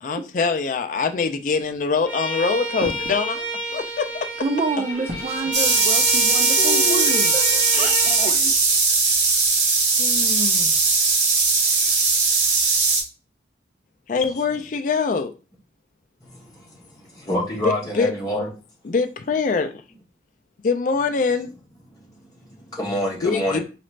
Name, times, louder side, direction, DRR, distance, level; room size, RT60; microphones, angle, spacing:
voice 1, 0.0-3.5 3.7-4.1 6.6-7.3 10.0-10.8 14.1-15.3 17.6-18.1 18.8-19.7 20.6-21.5 23.2-23.6, left 4 dB, 45° left, 0.4 m, -24 dB
Bowed string instrument, 2.1-8.3, equal, 10° right, 1.0 m, -30 dB
sound 1, 2.8-3.2 5.1-5.5, equal, 55° right, 0.8 m, -33 dB
voice 2, 4.4-8.6, right 3 dB, 35° right, 0.3 m, -28 dB
sound 2, 5.5-13.0, right 4 dB, 85° right, 0.9 m, -19 dB
voice 3, 16.2-18.5 22.0-23.6, left 1 dB, 20° left, 1.0 m, -28 dB
4.1 x 2.4 x 3.2 m
head